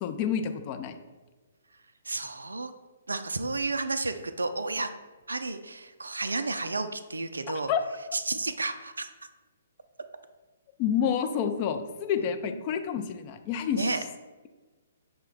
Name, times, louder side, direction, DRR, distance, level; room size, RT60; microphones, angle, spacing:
voice 1, 0.0-1.0 7.7-7.8 10.8-14.0, left 8 dB, 30° left, 6 dB, 0.3 m, -29 dB
voice 2, 2.1-2.7 3.1-4.9 5.3-7.7 8.1-9.1 12.4-12.6 13.7-14.0, right 3 dB, 70° right, 10 dB, 0.3 m, -31 dB
6.2 x 2.1 x 3.7 m, 1.3 s
figure-of-eight pair, 125°, 0 cm